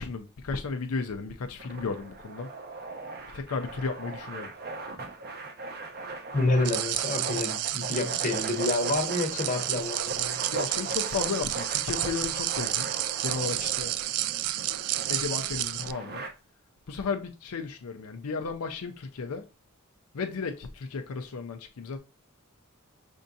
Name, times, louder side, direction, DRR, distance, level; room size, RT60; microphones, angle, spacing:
voice 1, 0.0-2.5 3.3-4.5 10.5-12.9 13.2-13.9 15.1-16.3 16.9-19.5 20.1-22.0, left 4 dB, 85° left, 0.5 m, -34 dB
sound 1, 1.6-16.3, right 3 dB, 50° right, 0.8 m, -39 dB
voice 2, 6.3-10.4, left 2 dB, 40° left, 0.9 m, -28 dB
sound 2, 6.6-15.9, right 15 dB, 85° right, 0.3 m, -31 dB
5.4 x 3.6 x 2.6 m
head